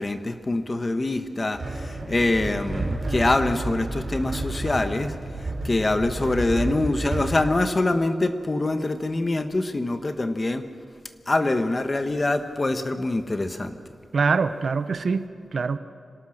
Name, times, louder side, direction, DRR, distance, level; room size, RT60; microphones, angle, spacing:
voice 1, 0.0-5.1 5.6-10.6 11.3-13.8, left 2 dB, 30° left, 8 dB, 1.3 m, -24 dB
sound 1, 1.5-7.4, right 2 dB, 45° right, 5.3 m, -31 dB
voice 2, 14.1-15.8, right 4 dB, 65° right, 11 dB, 0.9 m, -24 dB
26.0 x 18.0 x 6.6 m, 2.3 s
wide cardioid pair, 105°, 0 cm